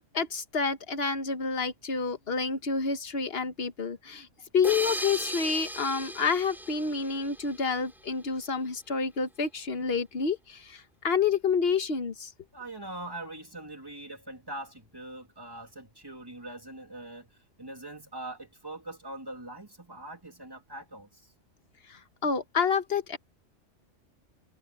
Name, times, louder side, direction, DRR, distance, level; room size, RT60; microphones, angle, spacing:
voice 1, 0.0-4.3 4.5-12.3 21.9-23.2, left 5 dB, 55° left, 1.5 m, -29 dB
sound 1, 4.6-8.0, right 1 dB, ahead, 3.2 m, -37 dB
voice 2, 12.5-21.3, right 1 dB, 20° right, 2.6 m, -42 dB
omnidirectional pair, 1.2 m